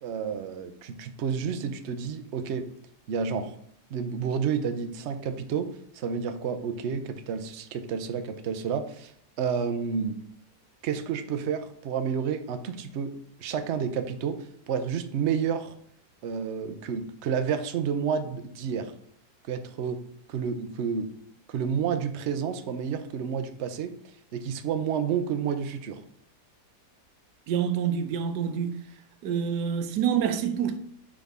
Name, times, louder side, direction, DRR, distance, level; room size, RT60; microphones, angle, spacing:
voice 1, 0.0-2.7 3.1-3.5 3.9-5.7 5.9-9.1 9.4-10.2 10.8-13.1 13.4-14.4 14.7-15.7 16.2-18.9 19.5-20.0 20.3-21.1 21.5-23.9 24.3-26.0, right 7 dB, 60° right, 0.8 m, -30 dB
voice 2, 27.5-28.8 29.2-30.8, right 8 dB, 85° right, 1.3 m, -27 dB
9.5 x 3.7 x 3.5 m
omnidirectional pair, 1.8 m